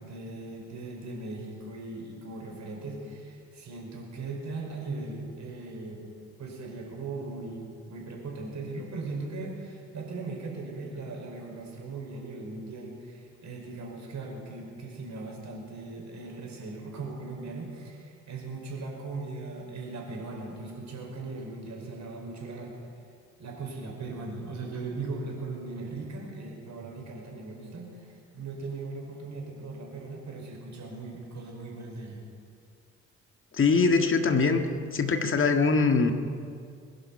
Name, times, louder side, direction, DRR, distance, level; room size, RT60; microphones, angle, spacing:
voice 1, 0.0-6.0 6.4-22.7 23.4-32.2, right 3 dB, 50° right, 0 dB, 5.4 m, -39 dB
voice 2, 33.5-34.6 34.9-36.1, left 4 dB, 35° left, 6 dB, 1.9 m, -22 dB
22.0 x 11.0 x 5.7 m, 2.2 s
figure-of-eight pair, 45°, 37 cm